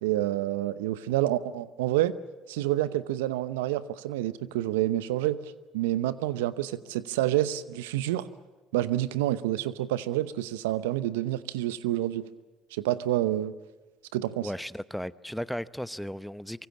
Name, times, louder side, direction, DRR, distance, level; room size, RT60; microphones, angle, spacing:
voice 1, 0.0-2.2 2.5-8.3 8.7-12.3 12.7-13.5 14.1-14.5, right 14 dB, 85° right, 16 dB, 0.8 m, -28 dB
voice 2, 14.4-16.7, equal, ahead, 17 dB, 0.8 m, -35 dB
24.5 x 23.0 x 7.4 m, 1.2 s
hypercardioid pair, 60°, 0 cm